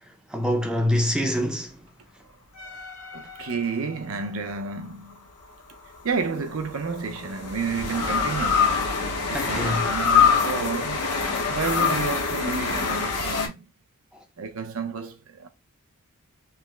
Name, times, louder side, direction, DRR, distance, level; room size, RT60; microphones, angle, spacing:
voice 1, 0.3-1.8 9.3-9.9, equal, 5° right, 0.5 m, -25 dB
sound 1, 2.6-4.1 5.9-13.5, left 6 dB, 85° left, 0.8 m, -25 dB
voice 2, 3.1-5.2 6.0-8.8 9.2-11.0 11.5-13.7 14.4-15.5, right 5 dB, 65° right, 0.6 m, -31 dB
3.4 x 2.0 x 3.2 m
head